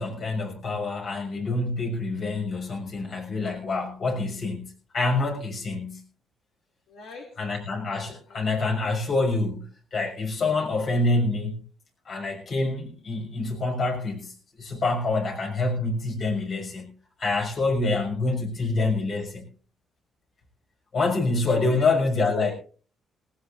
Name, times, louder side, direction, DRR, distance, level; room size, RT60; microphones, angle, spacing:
voice 1, 0.0-6.0 7.4-11.6 12.1-16.9 17.2-19.5 20.9-22.5, left 3 dB, 55° left, 2 dB, 6.4 m, -26 dB
voice 2, 6.9-7.3 8.3-8.5 18.6-18.9 21.5-21.9 22.1-22.5, left 5 dB, 90° left, 0 dB, 2.7 m, -41 dB
19.0 x 18.5 x 2.6 m, 0.41 s
cardioid pair, 90°, 0 cm